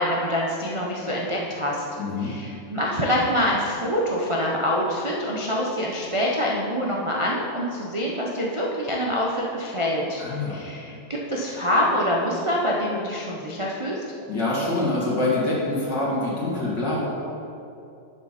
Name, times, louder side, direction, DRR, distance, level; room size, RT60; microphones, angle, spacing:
voice 1, 0.0-1.8 2.2-10.2 10.5-11.0 11.3-13.9, equal, 35° right, -4 dB, 0.4 m, -25 dB
voice 2, 2.0-2.3 10.2-10.6 14.3-17.0, left 2 dB, 65° left, -6 dB, 2.9 m, -25 dB
11.0 x 7.0 x 4.2 m, 2.6 s
omnidirectional pair, 2.1 m